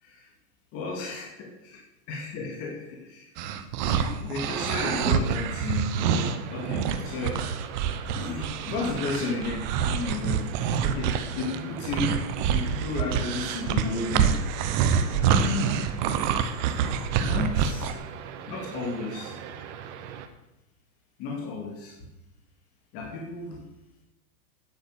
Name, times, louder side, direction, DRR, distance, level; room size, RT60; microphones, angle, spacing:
voice 1, 0.7-1.8 2.1-3.3 3.9-7.5 8.1-10.5 10.8-12.2 12.5-14.4 15.2-15.8 17.2-17.9 18.5-19.3 21.2-22.0 22.9-23.6, left 4 dB, 30° left, -1 dB, 2.2 m, -33 dB
sound 1, 3.4-17.9, right 7 dB, 30° right, 0.7 m, -26 dB
sound 2, 6.3-20.3, right 8 dB, 50° right, 1.3 m, -41 dB
9.8 x 8.4 x 6.6 m, 0.96 s
supercardioid pair, 155°, 46 cm